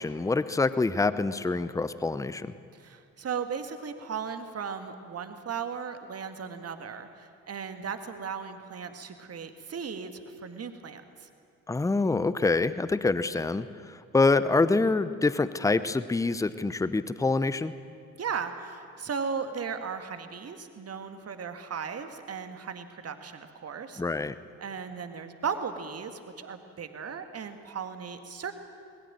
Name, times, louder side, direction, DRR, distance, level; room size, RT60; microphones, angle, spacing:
voice 1, 0.0-2.5 11.7-17.7 24.0-24.3, left 3 dB, 10° left, 15 dB, 0.8 m, -26 dB
voice 2, 2.7-11.3 18.2-24.0 24.6-28.5, right 6 dB, 35° right, 8 dB, 1.9 m, -36 dB
21.0 x 20.5 x 7.7 m, 2.3 s
figure-of-eight pair, 50°, 42 cm